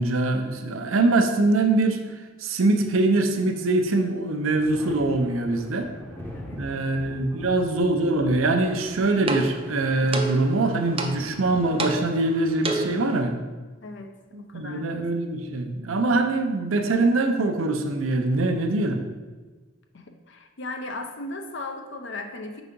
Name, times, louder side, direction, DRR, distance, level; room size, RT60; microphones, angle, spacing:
voice 1, 0.0-5.9 6.5-13.4 14.3-19.0, right 2 dB, 85° right, 6 dB, 0.6 m, -23 dB
Thunder, 2.9-3.7 4.0-13.6 15.1-15.9, equal, 10° left, 0.8 m, -43 dB
voice 2, 6.3-6.9 7.3-7.5 13.8-14.1 14.4-14.8 19.9-22.6, left 2 dB, 60° left, 5 dB, 0.7 m, -37 dB
sound 1, 8.6-13.2, right 3 dB, 30° right, 0.5 m, -32 dB
4.7 x 4.0 x 5.2 m, 1.3 s
head